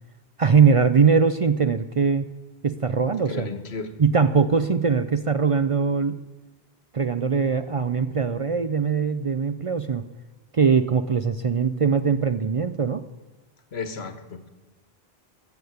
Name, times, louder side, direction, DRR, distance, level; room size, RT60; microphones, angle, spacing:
voice 1, 0.4-2.2 2.6-3.5 4.0-6.2 6.9-10.0 10.5-13.0, right 5 dB, 45° right, 11 dB, 0.5 m, -21 dB
voice 2, 3.3-3.9 13.7-14.5, left 4 dB, 90° left, 10 dB, 1.5 m, -33 dB
15.0 x 7.2 x 9.4 m, 1.1 s
omnidirectional pair, 1.0 m